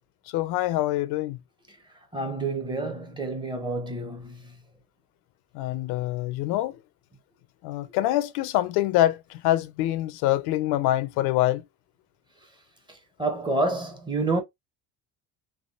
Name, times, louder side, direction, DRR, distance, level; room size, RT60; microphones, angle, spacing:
voice 1, 0.3-1.4 5.5-6.8 7.6-11.6, left 15 dB, 75° left, 0.5 m, -25 dB
voice 2, 2.1-4.5 8.0-8.1 13.2-14.4, right 2 dB, 10° right, 0.6 m, -28 dB
3.4 x 2.3 x 2.3 m
cardioid pair, 145°, 38 cm